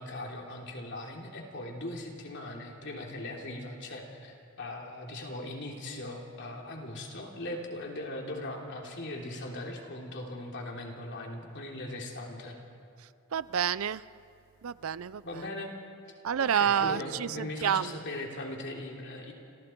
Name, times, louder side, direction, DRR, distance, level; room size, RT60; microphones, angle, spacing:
voice 1, 0.0-12.6 15.2-15.7 16.4-19.3, left 1 dB, 55° left, 0 dB, 3.2 m, -39 dB
voice 2, 13.3-14.0 14.6-15.4 16.2-17.9, right 8 dB, 70° right, 17 dB, 0.5 m, -29 dB
29.5 x 26.5 x 4.6 m, 2.4 s
head